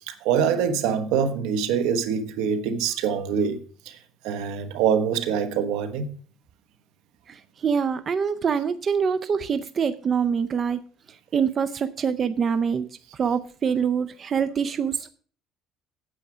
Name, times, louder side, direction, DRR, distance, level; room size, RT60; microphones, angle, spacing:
voice 1, 0.1-3.6 3.8-4.0 4.2-6.1, right 7 dB, 85° right, 1.2 m, -24 dB
voice 2, 7.3-10.8 11.3-12.9 13.1-15.1, right 6 dB, 35° right, 0.5 m, -25 dB
9.1 x 8.3 x 4.9 m
cardioid pair, 125°, 0 cm